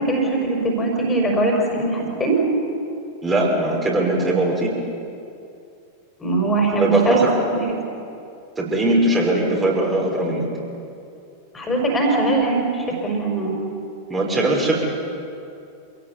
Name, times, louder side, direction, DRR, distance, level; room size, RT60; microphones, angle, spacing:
voice 1, 0.0-2.4 6.2-7.8 11.5-13.7, right 2 dB, 15° left, 0 dB, 5.3 m, -21 dB
voice 2, 3.2-4.7 6.8-7.3 8.6-10.5 14.1-14.8, right 1 dB, 15° right, -2 dB, 5.8 m, -20 dB
27.0 x 18.0 x 8.4 m, 2.6 s
figure-of-eight pair, 90°, 0 cm